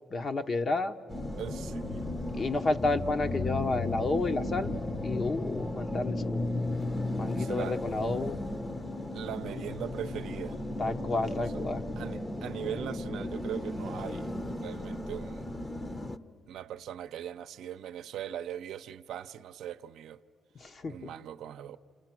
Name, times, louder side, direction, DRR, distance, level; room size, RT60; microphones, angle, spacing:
voice 1, 0.1-1.0 2.4-4.7 5.0-6.4 7.1-8.4 10.8-11.8 20.6-21.1, left 2 dB, 40° left, 1.1 m, -31 dB
sound 1, 1.1-16.2, left 2 dB, 20° left, 0.9 m, -35 dB
voice 2, 1.3-2.1 7.3-7.8 9.1-10.6 11.3-11.4 12.0-14.3 14.6-15.5 16.5-20.2 20.9-21.8, right 10 dB, 80° right, 0.6 m, -40 dB
30.0 x 28.0 x 6.1 m
cardioid pair, 90°, 0 cm